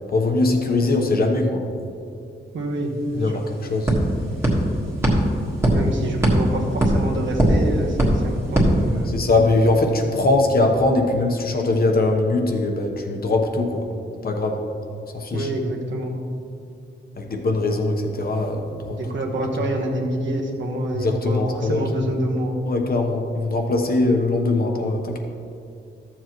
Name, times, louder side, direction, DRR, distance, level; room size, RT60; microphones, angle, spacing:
voice 1, 0.1-1.6 3.2-3.9 9.1-13.9 14.2-14.6 15.1-15.5 17.2-19.0 20.9-21.8 22.6-25.2, left 2 dB, 50° left, 3 dB, 1.0 m, -21 dB
voice 2, 2.5-3.4 5.7-9.2 15.3-16.1 18.9-22.7, right 1 dB, 75° right, 0 dB, 1.3 m, -27 dB
sound 1, 2.7-2.8 3.1-9.5, equal, 15° right, 1.6 m, -21 dB
13.5 x 7.5 x 3.1 m, 2.5 s
wide cardioid pair, 160°, 20 cm